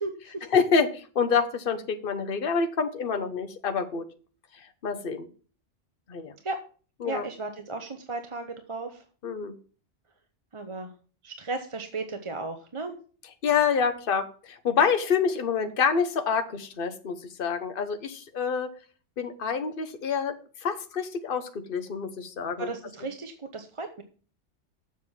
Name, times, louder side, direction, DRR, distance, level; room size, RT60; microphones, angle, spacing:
voice 1, 0.0-0.5 6.4-6.6 7.0-9.0 10.5-10.9 11.2-13.0 22.6-24.0, right 3 dB, 30° right, 6 dB, 0.7 m, -35 dB
voice 2, 0.5-4.0 4.6-5.3 6.1-6.3 7.0-7.2 9.2-9.6 13.4-18.7 19.2-22.7, left 6 dB, 50° left, 8 dB, 1.1 m, -27 dB
7.5 x 6.0 x 7.2 m, 0.40 s
omnidirectional pair, 1.2 m